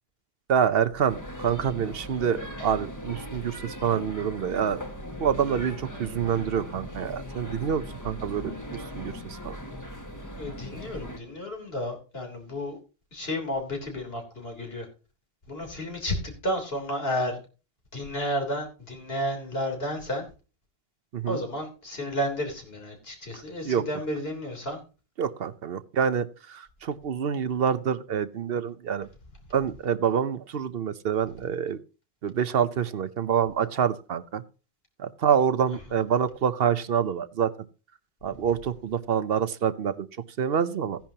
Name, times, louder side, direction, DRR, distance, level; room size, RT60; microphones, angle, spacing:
voice 1, 0.5-4.8 5.2-9.6 21.1-21.4 23.3-23.8 25.2-29.1 29.5-31.8 32.2-34.4 35.0-37.5 38.2-40.1 40.4-41.0, right 8 dB, 70° right, 14 dB, 1.0 m, -27 dB
sound 1, 1.1-11.2, equal, 20° left, 1.6 m, -39 dB
voice 2, 10.4-12.8 13.1-14.9 15.5-17.4 17.9-20.3 21.3-24.8, equal, 75° left, 2 dB, 3.7 m, -32 dB
15.5 x 10.5 x 2.8 m, 0.33 s
omnidirectional pair, 1.0 m